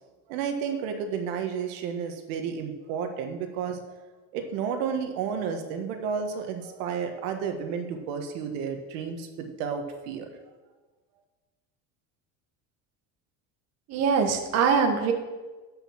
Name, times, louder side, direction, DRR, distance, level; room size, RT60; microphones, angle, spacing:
voice 1, 0.3-4.0 4.3-10.3, right 6 dB, 85° right, 5 dB, 1.6 m, -32 dB
voice 2, 13.9-15.1, right 6 dB, 45° right, 4 dB, 1.4 m, -23 dB
12.0 x 5.6 x 7.3 m, 1.2 s
cardioid pair, 145°, 37 cm